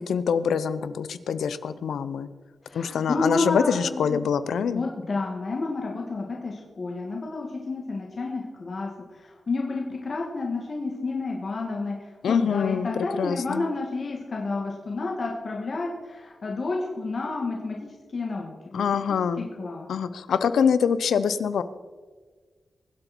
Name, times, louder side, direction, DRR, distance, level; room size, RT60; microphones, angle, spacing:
voice 1, 0.0-2.3 2.7-4.9 12.2-13.6 18.7-19.5 19.9-21.6, left 7 dB, 90° left, 14 dB, 0.6 m, -25 dB
voice 2, 2.6-4.2 4.7-11.9 12.3-17.8 18.1-19.0 19.6-19.9, left 3 dB, 55° left, -1 dB, 2.2 m, -30 dB
23.0 x 8.0 x 4.5 m, 1.4 s
cardioid pair, 70°, 0 cm